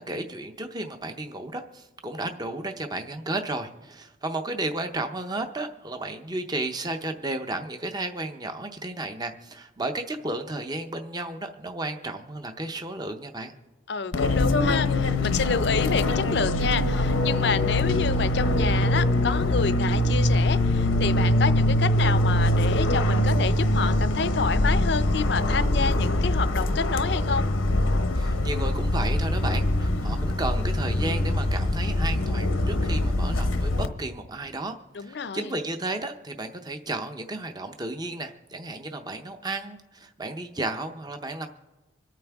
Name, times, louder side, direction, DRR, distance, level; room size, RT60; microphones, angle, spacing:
voice 1, 0.0-13.5 28.1-41.5, right 2 dB, 20° right, 6 dB, 0.6 m, -33 dB
voice 2, 13.9-27.5 34.9-35.5, left 5 dB, 60° left, 14 dB, 0.5 m, -29 dB
Fixed-wing aircraft airplane, 14.1-33.9, left 1 dB, 90° left, 0.9 m, -23 dB
26.0 x 9.1 x 3.5 m, 1.1 s
head